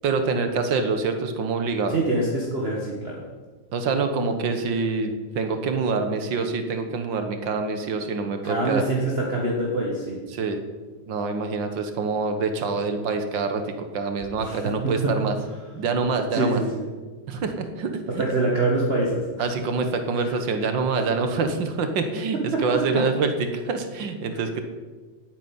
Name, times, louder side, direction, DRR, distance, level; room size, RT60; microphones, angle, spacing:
voice 1, 0.0-2.0 3.7-8.8 10.3-10.6 11.1-15.3 15.7-16.6 17.3-18.2 19.4-24.6, right 4 dB, 70° right, 7 dB, 1.9 m, -26 dB
voice 2, 1.9-3.2 8.4-10.2 14.4-15.2 16.3-16.8 18.1-19.5 20.2-20.3 22.3-23.0 24.3-24.6, right 2 dB, 35° right, -2 dB, 1.8 m, -25 dB
9.5 x 8.2 x 9.0 m, 1.4 s
omnidirectional pair, 2.1 m